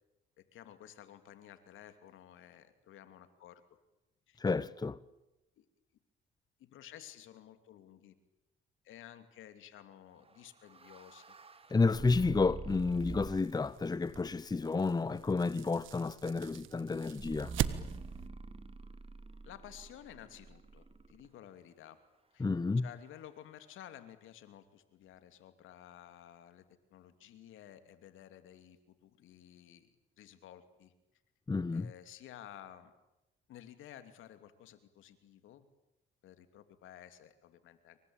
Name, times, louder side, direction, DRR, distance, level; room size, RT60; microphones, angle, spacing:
voice 1, 0.4-3.6 4.3-4.4 5.6-5.7 6.6-8.1 8.8-11.4 19.4-22.0 22.3-22.5 22.8-26.6 26.9-30.9 31.7-32.9 33.5-35.6 36.2-38.0, left 11 dB, 85° left, 2.9 m, -54 dB
voice 2, 4.4-5.0 11.7-17.5 22.4-22.9 31.5-31.9, left 4 dB, 20° left, 0.9 m, -31 dB
sound 1, 10.3-13.6 14.1-14.6 17.2-21.3, right 4 dB, 30° right, 2.4 m, -47 dB
sound 2, 12.7-18.3, right 11 dB, 80° right, 1.6 m, -42 dB
27.5 x 24.5 x 9.0 m
cardioid pair, 90°, 20 cm